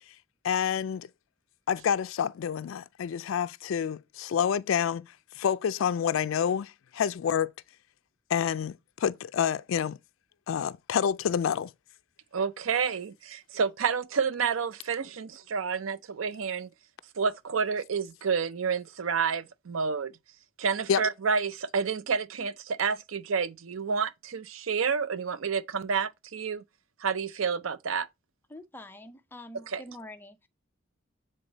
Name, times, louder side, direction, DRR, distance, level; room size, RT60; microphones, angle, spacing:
voice 1, 0.4-1.1 1.7-7.5 8.3-10.0 10.5-11.7 20.9-21.0, left 8 dB, 80° left, 0.3 m, -28 dB
voice 2, 12.3-16.7 17.2-20.1 20.6-26.6 27.0-28.1 29.7-29.8, right 5 dB, 85° right, 0.6 m, -29 dB
voice 3, 28.5-30.5, left 1 dB, 10° left, 0.6 m, -46 dB
8.1 x 3.9 x 4.0 m
head